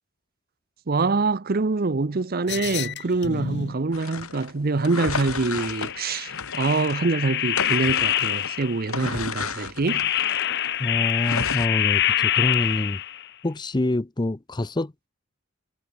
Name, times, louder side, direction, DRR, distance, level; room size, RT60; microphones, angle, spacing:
voice 1, 0.9-10.0, right 3 dB, 45° right, 0.7 m, -25 dB
sound 1, 2.5-3.8 5.5-8.9 9.9-13.3, left 11 dB, 55° left, 1.2 m, -26 dB
sound 2, 3.9-7.0 7.4-10.7 11.2-11.7, left 4 dB, 85° left, 3.2 m, -32 dB
voice 2, 10.8-13.0 13.4-15.1, left 1 dB, 20° left, 0.6 m, -26 dB
head